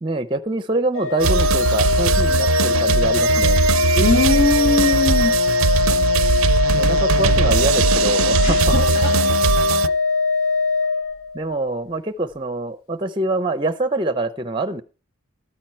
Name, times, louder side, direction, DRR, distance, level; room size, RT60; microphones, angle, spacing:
voice 1, 0.0-3.6 6.7-8.8 11.3-14.8, right 2 dB, 25° right, 14 dB, 0.5 m, -25 dB
Organ, 0.9-11.6, left 4 dB, 80° left, 0.6 m, -20 dB
sound 1, 1.2-9.9, right 6 dB, 90° right, 0.4 m, -20 dB
voice 2, 3.9-5.3 8.4-9.3, left 3 dB, 55° left, 0 dB, 2.2 m, -21 dB
12.5 x 9.0 x 4.4 m, 0.34 s
head